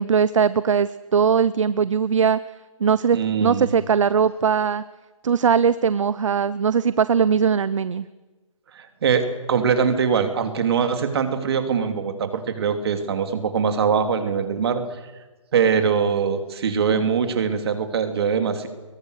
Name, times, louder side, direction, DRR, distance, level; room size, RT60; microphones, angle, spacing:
voice 1, 0.0-2.4 2.8-4.8 5.2-8.1, right 6 dB, 65° right, 16 dB, 0.8 m, -20 dB
voice 2, 3.1-3.7 8.7-14.8 15.5-18.7, right 6 dB, 50° right, 6 dB, 3.2 m, -22 dB
29.0 x 22.0 x 6.6 m, 1.2 s
hypercardioid pair, 155°, 17 cm